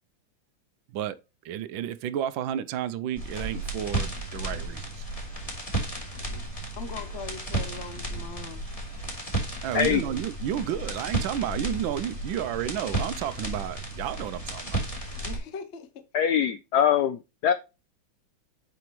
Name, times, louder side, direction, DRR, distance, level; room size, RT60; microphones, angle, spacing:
voice 1, 1.4-5.1 9.6-14.8, right 10 dB, 75° right, 1.3 m, -31 dB
sound 1, 3.2-15.4, right 2 dB, 15° left, 2.6 m, -33 dB
voice 2, 6.7-8.6 15.2-16.0, left 4 dB, 60° left, 0.7 m, -40 dB
voice 3, 16.1-17.5, left 9 dB, 90° left, 0.8 m, -23 dB
8.3 x 5.0 x 3.1 m
omnidirectional pair, 2.3 m